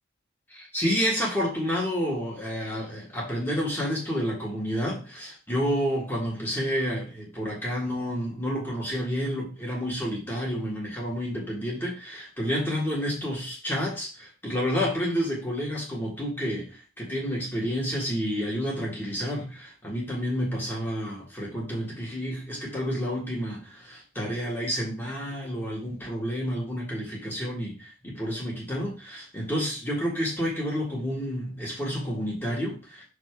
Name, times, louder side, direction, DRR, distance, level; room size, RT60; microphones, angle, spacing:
voice 1, 0.5-33.0, equal, 10° left, -4 dB, 1.8 m, -30 dB
6.0 x 3.6 x 4.7 m, 0.34 s
head